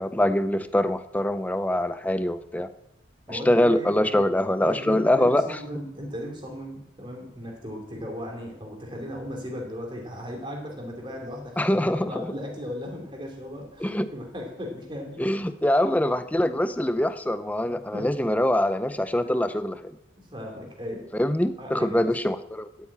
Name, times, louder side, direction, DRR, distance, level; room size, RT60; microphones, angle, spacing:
voice 1, 0.0-2.7 3.3-5.6 11.6-12.3 13.8-14.1 15.2-20.0 21.1-22.7, left 1 dB, 10° left, 12 dB, 0.6 m, -24 dB
voice 2, 3.3-4.2 4.6-15.2 17.6-18.3 19.2-19.4 20.2-21.1 21.6-22.1, equal, 25° right, 0 dB, 3.0 m, -37 dB
13.0 x 8.4 x 8.7 m, 0.84 s
head